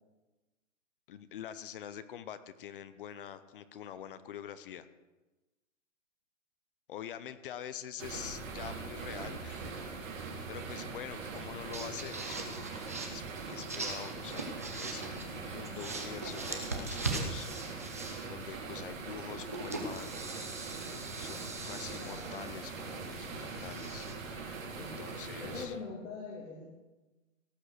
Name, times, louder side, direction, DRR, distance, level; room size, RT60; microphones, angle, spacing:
voice 1, 1.1-4.9 6.9-10.1 10.5-14.5 14.7-17.8 18.3-20.4 21.2-24.1 24.8-25.8, left 10 dB, 45° left, 13 dB, 0.7 m, -45 dB
sound 1, 8.0-25.7, right 4 dB, 80° right, 4.1 m, -42 dB
sound 2, 11.4-11.5 11.7-15.3 15.6-18.5 19.3-24.2, right 3 dB, 15° right, 0.3 m, -41 dB
voice 2, 21.9-22.4 24.8-26.7, left 4 dB, 85° left, -3 dB, 3.2 m, -44 dB
17.5 x 6.4 x 6.4 m, 1.1 s
hypercardioid pair, 150°, 39 cm